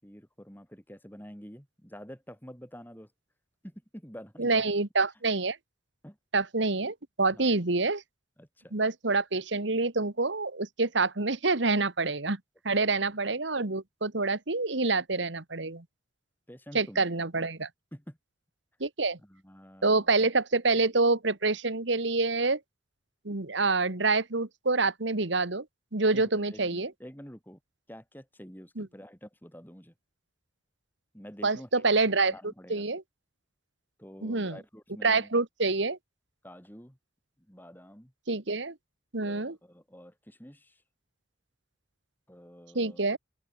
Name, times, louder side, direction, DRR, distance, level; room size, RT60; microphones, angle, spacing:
voice 1, 0.0-3.1 3.6-4.6 6.0-6.2 7.3-7.5 8.4-8.7 12.7-12.8 16.5-17.0 17.4-17.5 17.9-18.2 19.2-20.1 26.1-27.6 27.9-29.9 31.1-31.7 32.0-32.9 34.0-35.3 36.4-37.0 37.5-38.1 39.2-40.8 42.3-43.0, equal, 10° left, 7.6 m, -48 dB
voice 2, 4.4-5.6 6.3-8.0 8.7-12.4 12.6-15.8 16.7-17.7 18.8-19.2 19.8-22.6 23.2-25.6 25.9-26.9 28.8-28.9 31.4-32.3 32.7-33.0 34.2-34.6 35.0-36.0 38.3-38.7 39.1-39.6 42.7-43.2, right 3 dB, 70° right, 1.7 m, -27 dB
open air
head